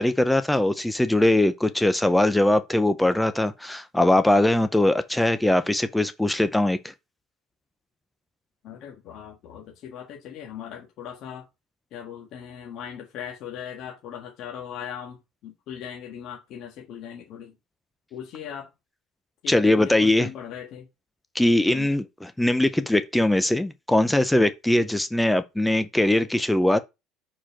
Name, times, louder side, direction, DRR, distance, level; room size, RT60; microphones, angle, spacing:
voice 1, 0.0-6.9 19.5-20.3 21.3-26.8, left 1 dB, 5° left, 0.4 m, -21 dB
voice 2, 8.6-11.4 11.9-17.5 18.1-18.7 19.4-20.9 21.6-21.9, left 8 dB, 45° left, 1.6 m, -39 dB
4.9 x 4.3 x 5.7 m
cardioid pair, 170°, 0 cm